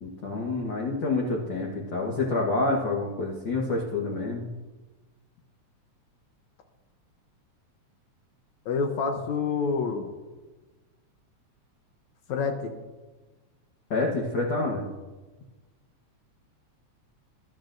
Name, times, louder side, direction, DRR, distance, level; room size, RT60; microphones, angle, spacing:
voice 1, 0.0-4.5 13.9-14.9, left 3 dB, 50° left, -2 dB, 1.7 m, -28 dB
voice 2, 8.7-10.1 12.3-12.8, left 5 dB, 75° left, 4 dB, 2.2 m, -27 dB
21.5 x 12.0 x 2.6 m, 1.2 s
omnidirectional pair, 3.3 m